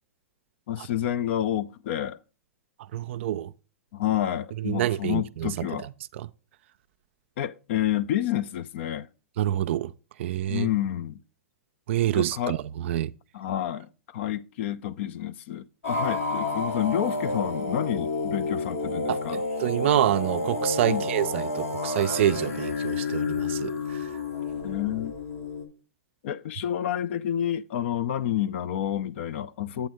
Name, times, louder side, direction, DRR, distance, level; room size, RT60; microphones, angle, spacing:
voice 1, 0.7-2.2 3.9-5.9 7.4-9.1 10.5-11.2 12.0-12.6 13.3-19.4 20.8-21.1 24.6-25.1 26.2-29.9, left 11 dB, 55° left, 0.4 m, -29 dB
voice 2, 2.9-3.5 4.6-5.7 6.2-6.3 9.4-9.9 10.2-10.7 11.9-13.1 19.1-24.1, right 12 dB, 55° right, 0.3 m, -27 dB
sound 1, 15.8-25.6, left 3 dB, 85° left, 1.7 m, -30 dB
8.2 x 3.4 x 6.3 m
hypercardioid pair, 110°, 8 cm